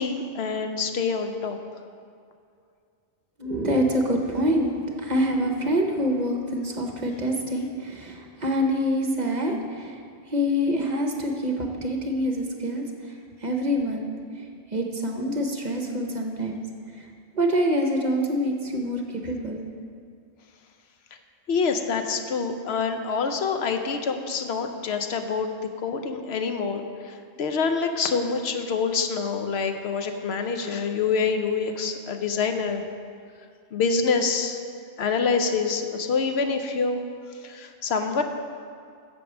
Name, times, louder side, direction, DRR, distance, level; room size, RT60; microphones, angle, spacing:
voice 1, 0.0-1.6 21.5-25.5 25.8-32.8 33.7-34.6 35.0-37.0 37.4-38.2, left 5 dB, 70° left, 6 dB, 0.9 m, -26 dB
voice 2, 3.4-10.0 10.3-12.9 13.4-14.1 14.7-16.6 17.0-17.1 17.3-19.6, equal, 45° right, 2 dB, 0.9 m, -26 dB
8.1 x 7.2 x 6.0 m, 2.3 s
omnidirectional pair, 1.1 m